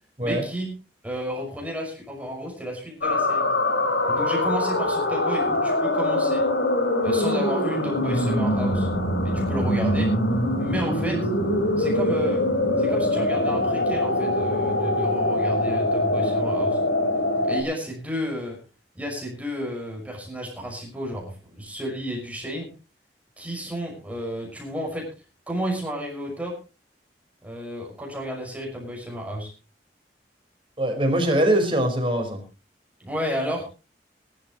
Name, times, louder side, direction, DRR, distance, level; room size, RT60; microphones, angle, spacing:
voice 1, 0.2-0.7 1.0-3.5 4.1-6.4 7.0-8.9 9.2-10.1 10.6-11.2 11.8-12.4 12.8-16.8 17.4-18.6 18.9-22.7 23.4-25.1 25.5-26.5 27.4-29.5 33.0-33.7, equal, 10° right, -1 dB, 6.0 m, -32 dB
sound 1, 3.0-17.6, left 1 dB, 85° left, 4.8 m, -23 dB
voice 2, 30.8-32.4, right 1 dB, 30° right, 3 dB, 5.1 m, -22 dB
21.5 x 12.5 x 3.1 m, 0.32 s
head